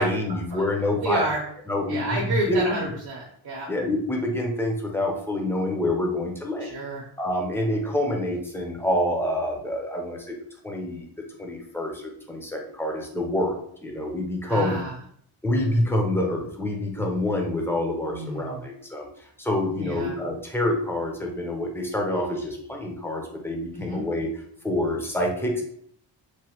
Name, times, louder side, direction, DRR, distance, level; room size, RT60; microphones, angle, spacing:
voice 1, 0.0-1.2 1.7-2.6 3.7-6.7 7.2-10.3 10.6-11.1 11.4-14.8 15.4-19.1 19.4-24.3 24.6-25.6, left 1 dB, 5° left, 0 dB, 0.5 m, -27 dB
voice 2, 1.0-1.4 1.9-3.7 6.6-7.0 14.5-15.0 18.1-18.6 19.8-20.2 23.7-24.0, right 1 dB, 50° right, -3 dB, 0.7 m, -30 dB
3.1 x 2.1 x 2.8 m, 0.65 s
wide cardioid pair, 115°, 48 cm